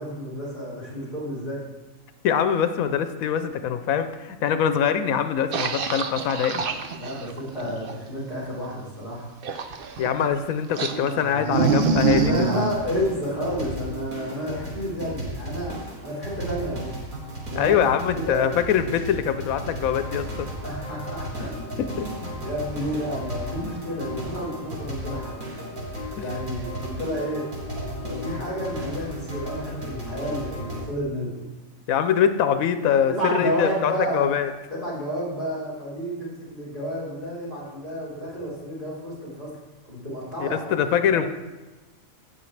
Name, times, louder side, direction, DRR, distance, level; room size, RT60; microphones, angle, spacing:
voice 1, 0.0-1.6 7.0-9.3 12.2-17.0 17.4-17.8 18.1-18.5 20.6-21.5 22.0-25.4 26.2-27.5 28.0-31.3 33.1-34.3 34.7-39.6 39.8-41.3, equal, 35° right, -9 dB, 3.6 m, -31 dB
voice 2, 2.2-6.6 10.0-12.4 17.6-20.5 21.8-22.1 26.2-26.3 31.9-34.5 40.4-41.3, left 8 dB, 85° left, 9 dB, 1.0 m, -23 dB
sound 1, 5.5-7.9 9.4-10.3 10.8-12.7, right 5 dB, 50° right, 0.7 m, -25 dB
sound 2, 11.5-30.8, equal, 85° right, 2.6 m, -35 dB
16.0 x 6.1 x 3.3 m, 1.2 s
omnidirectional pair, 1.4 m